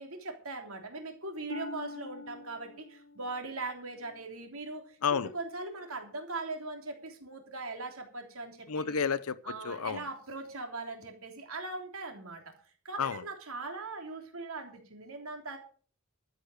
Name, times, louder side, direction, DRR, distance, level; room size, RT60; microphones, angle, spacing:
voice 1, 0.0-5.0 5.3-9.0 9.4-12.5 12.9-15.6, right 3 dB, 70° right, 3.3 m, -40 dB
Harp, 1.5-5.2 5.8-6.2 6.8-6.9, left 3 dB, 60° left, 1.1 m, -46 dB
voice 2, 8.7-10.0 13.0-13.2, left 6 dB, 85° left, 0.8 m, -31 dB
13.0 x 8.4 x 6.5 m
head